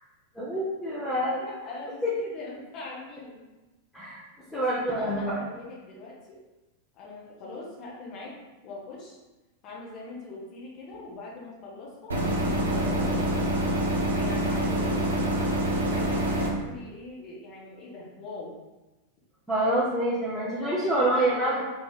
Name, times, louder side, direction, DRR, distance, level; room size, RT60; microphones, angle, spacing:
voice 1, 0.3-1.4 2.0-2.1 3.9-4.2 4.5-5.4 19.5-21.6, right 1 dB, ahead, -9 dB, 0.9 m, -26 dB
voice 2, 1.3-3.4 4.5-6.4 6.9-9.2 9.6-13.2 14.1-15.2 15.9-18.6 20.6-21.6, left 3 dB, 40° left, -4 dB, 1.4 m, -41 dB
sound 1, 12.1-16.5, right 1 dB, 70° right, 0.7 m, -26 dB
3.7 x 3.1 x 3.8 m, 1.1 s
figure-of-eight pair, 90°, 0 cm